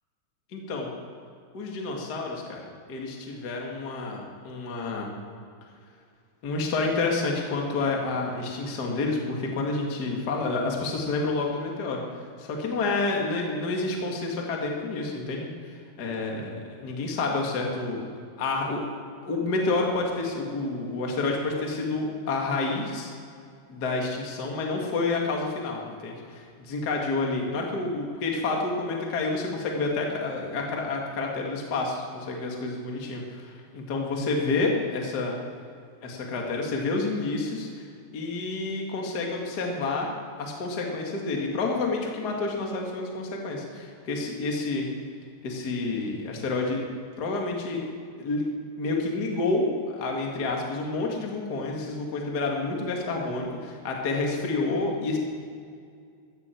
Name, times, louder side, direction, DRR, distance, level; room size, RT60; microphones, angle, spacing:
voice 1, 0.5-0.9 1.5-2.6 2.9-5.1 6.4-12.0 12.4-18.0 18.4-18.8 19.2-23.1 23.7-35.4 36.0-37.9 38.1-40.1 40.4-44.9 45.4-46.8 47.2-47.9 48.2-48.5 48.8-55.2, left 3 dB, 40° left, 0 dB, 1.4 m, -29 dB
14.5 x 14.5 x 4.5 m, 2.3 s
omnidirectional pair, 5.0 m